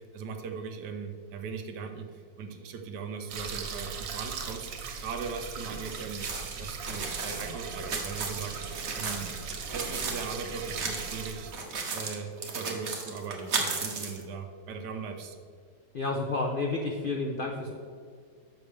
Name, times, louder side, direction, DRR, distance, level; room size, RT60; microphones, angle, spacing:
voice 1, 0.0-6.3 6.5-9.3 9.7-11.5 11.9-15.4, right 5 dB, 70° right, 6 dB, 1.3 m, -39 dB
sound 1, 3.3-11.5, right 5 dB, 90° right, 1.6 m, -39 dB
sound 2, 6.2-10.3 10.6-11.2 11.5-14.2, right 4 dB, 45° right, 1.2 m, -35 dB
voice 2, 15.9-17.8, left 3 dB, 70° left, 0 dB, 0.5 m, -30 dB
10.5 x 6.6 x 3.3 m, 2.1 s
omnidirectional pair, 1.9 m